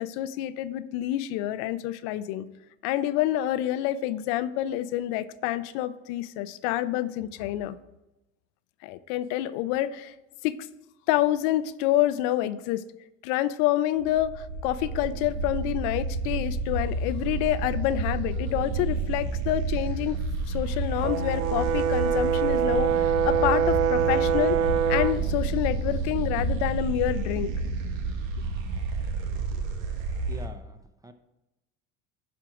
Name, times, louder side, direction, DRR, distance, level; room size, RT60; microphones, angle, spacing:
voice 1, 0.0-2.5 2.8-7.8 8.8-10.1 10.4-10.6 11.1-12.8 13.2-20.2 20.5-24.6 24.9-27.5, left 13 dB, 70° left, 14 dB, 0.6 m, -28 dB
sound 1, 14.0-30.5, right 3 dB, 85° right, 1.3 m, -30 dB
Brass instrument, 21.0-25.3, right 8 dB, 50° right, 0.5 m, -24 dB
voice 2, 30.3-31.1, right 1 dB, 10° right, 8 dB, 0.7 m, -44 dB
11.0 x 4.6 x 4.8 m, 0.99 s
supercardioid pair, 105°, 38 cm